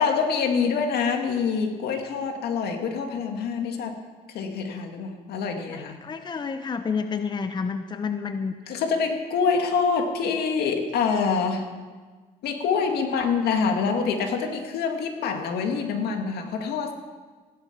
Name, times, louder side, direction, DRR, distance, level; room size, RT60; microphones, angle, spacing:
voice 1, 0.0-4.0 4.3-6.0 8.7-11.7 12.4-16.9, left 5 dB, 70° left, 4 dB, 2.0 m, -26 dB
voice 2, 5.7-8.8, left 5 dB, 25° left, 8 dB, 0.8 m, -30 dB
16.0 x 11.0 x 5.9 m, 1.4 s
cardioid pair, 110°, 17 cm